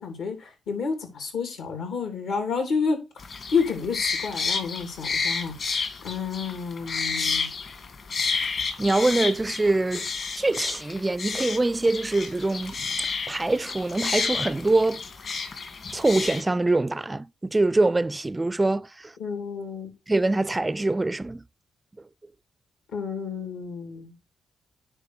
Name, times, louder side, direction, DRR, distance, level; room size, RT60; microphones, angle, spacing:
voice 1, 0.0-3.0 3.5-5.5 6.0-7.5 19.2-19.9 22.9-24.1, left 5 dB, 85° left, 3.2 m, -29 dB
sound 1, 3.2-16.4, left 5 dB, 55° left, 2.2 m, -31 dB
voice 2, 8.8-10.1 10.4-15.0 15.9-19.1 20.1-21.4, right 2 dB, 20° right, 0.3 m, -24 dB
10.0 x 3.4 x 6.6 m
cardioid pair, 80°, 0 cm